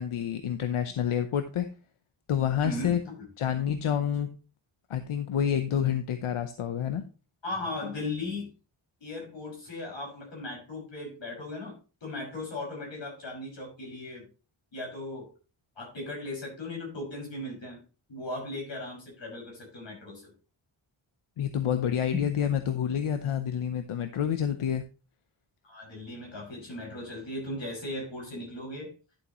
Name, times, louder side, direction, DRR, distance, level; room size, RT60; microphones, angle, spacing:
voice 1, 0.0-1.7 2.3-3.0 3.4-4.3 4.9-7.0 21.4-24.8, left 9 dB, 90° left, 8 dB, 0.8 m, -28 dB
voice 2, 2.6-3.2 7.4-8.5 9.0-11.8 12.0-14.2 14.7-15.3 15.8-17.8 18.1-20.3 22.1-22.2 25.6-28.9, left 2 dB, 65° left, -2 dB, 5.9 m, -37 dB
11.0 x 7.2 x 3.0 m, 0.34 s
wide cardioid pair, 165°, 49 cm